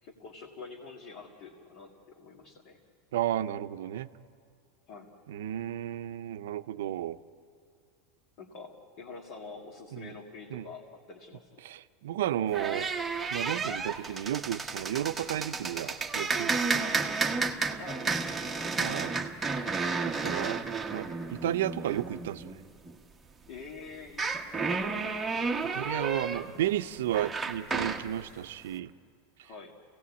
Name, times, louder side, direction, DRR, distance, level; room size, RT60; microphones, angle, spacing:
voice 1, 0.0-2.8 4.9-5.1 8.4-11.6 16.8-19.0 23.5-25.1 29.4-29.7, left 4 dB, 50° left, -2 dB, 2.1 m, -47 dB
voice 2, 3.1-4.1 5.3-7.2 9.9-10.1 10.5-10.7 11.6-12.9 13.3-16.8 18.8-19.1 20.1-20.6 20.9-22.5 25.7-28.9, right 12 dB, 90° right, 11 dB, 0.7 m, -33 dB
sound 1, 12.5-22.9 24.1-28.1, right 4 dB, 10° right, 1.0 m, -32 dB
28.0 x 17.0 x 8.4 m, 2.3 s
supercardioid pair, 155°, 0 cm